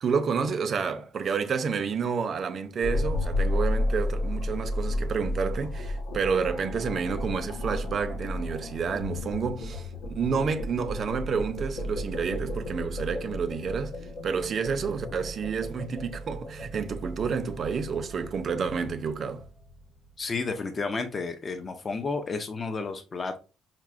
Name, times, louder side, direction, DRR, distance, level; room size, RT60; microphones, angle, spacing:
voice 1, 0.0-13.9 14.2-19.4, right 5 dB, 40° right, 0.4 m, -29 dB
sound 1, 2.8-20.1, left 1 dB, 85° left, 1.1 m, -33 dB
voice 2, 20.2-23.4, left 4 dB, 25° left, 0.4 m, -31 dB
5.6 x 2.0 x 2.4 m
cardioid pair, 150°, 0 cm